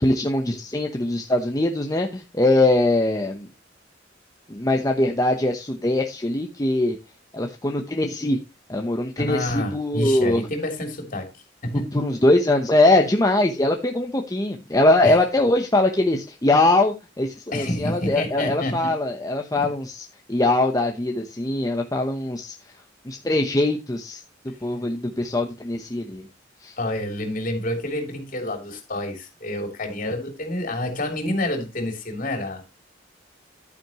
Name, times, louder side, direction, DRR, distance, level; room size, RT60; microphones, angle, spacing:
voice 1, 0.0-3.5 4.5-7.0 7.3-8.4 8.7-10.4 11.9-22.5 23.1-24.2 24.6-26.2 26.6-26.8, left 2 dB, 20° left, 0.9 m, -22 dB
voice 2, 9.3-11.3 11.6-12.0 15.0-15.2 17.5-18.9 19.5-19.7 26.8-32.6, left 1 dB, 45° left, 3.3 m, -28 dB
11.0 x 9.5 x 3.0 m
head